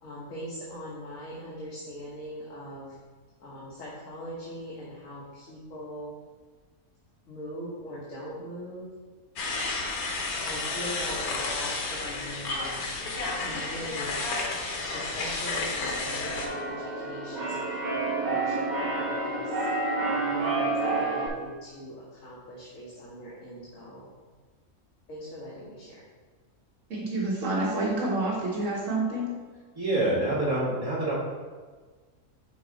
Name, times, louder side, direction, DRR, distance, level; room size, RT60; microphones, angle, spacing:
voice 1, 0.0-2.9 3.4-6.1 7.3-8.9 10.4-14.3 14.9-17.6 17.9-19.6 20.2-24.1 25.1-26.0, equal, 65° left, -6 dB, 1.5 m, -41 dB
sound 1, 9.4-16.5, left 3 dB, 90° left, 1.4 m, -31 dB
Keyboard (musical), 15.4-21.3, right 3 dB, 35° right, 1.0 m, -29 dB
voice 2, 26.9-29.3, right 2 dB, 60° right, -4 dB, 1.3 m, -28 dB
voice 3, 29.7-31.1, right 1 dB, 15° right, -9 dB, 1.9 m, -26 dB
6.0 x 4.6 x 3.9 m, 1.4 s
omnidirectional pair, 1.5 m